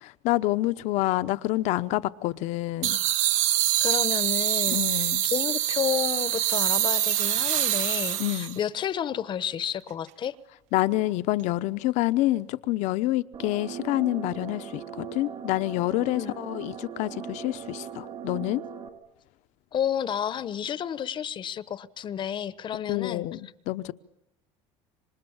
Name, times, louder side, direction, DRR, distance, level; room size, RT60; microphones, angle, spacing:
voice 1, 0.2-3.0 4.7-5.3 8.2-8.6 10.7-18.6 22.9-23.9, left 17 dB, 70° left, 1.0 m, -27 dB
sound 1, 2.8-8.6, right 12 dB, 70° right, 1.0 m, -25 dB
voice 2, 3.8-10.3 16.1-16.3 19.7-23.3, left 9 dB, 40° left, 1.0 m, -31 dB
sound 2, 13.3-18.9, right 8 dB, 45° right, 3.9 m, -39 dB
27.5 x 26.0 x 7.3 m
cardioid pair, 120°, 13 cm